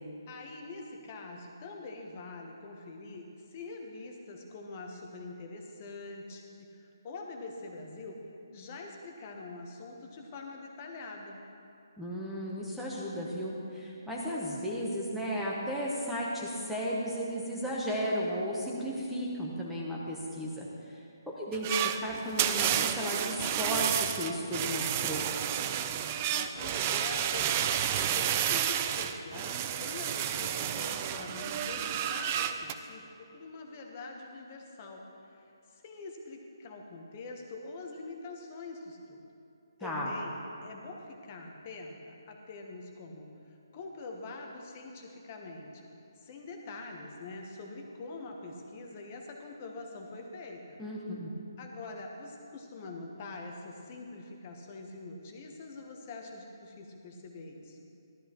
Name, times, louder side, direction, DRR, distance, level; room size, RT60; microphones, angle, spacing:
voice 1, 0.3-6.4 6.7-8.1 8.5-11.4 26.3-39.2 39.8-45.8 46.2-50.8 51.6-57.8, left 3 dB, 30° left, 2 dB, 0.9 m, -44 dB
voice 2, 12.0-20.7 21.3-25.3 39.8-40.1 50.8-51.3, equal, ahead, -6 dB, 0.9 m, -34 dB
sound 1, 21.5-32.7, right 10 dB, 20° right, 0.3 m, -31 dB
14.5 x 12.5 x 3.0 m, 2.6 s
hypercardioid pair, 165°, 2 cm